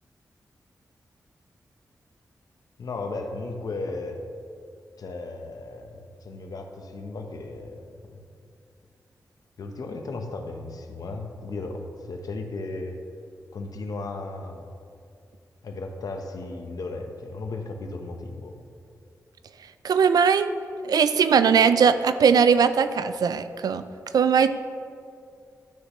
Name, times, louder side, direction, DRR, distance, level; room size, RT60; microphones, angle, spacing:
voice 1, 2.8-4.2 5.0-8.2 9.6-13.0 13.5-14.7 15.6-18.5, left 3 dB, 75° left, 4 dB, 0.9 m, -35 dB
voice 2, 19.8-20.5 20.8-23.8 24.1-24.5, right 6 dB, 85° right, 11 dB, 0.4 m, -19 dB
12.0 x 6.6 x 3.1 m, 2.4 s
wide cardioid pair, 90°, 6 cm